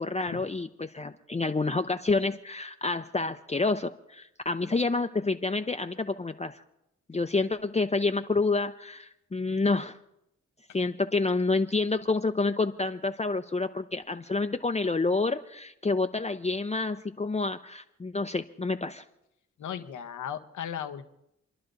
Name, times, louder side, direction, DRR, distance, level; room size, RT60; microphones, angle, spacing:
voice 1, 0.0-6.6 7.1-10.0 10.7-19.0, left 3 dB, 20° left, 6 dB, 0.6 m, -28 dB
voice 2, 19.6-21.0, left 9 dB, 85° left, 7 dB, 0.9 m, -36 dB
30.0 x 11.0 x 2.6 m, 0.81 s
cardioid pair, 50°, 29 cm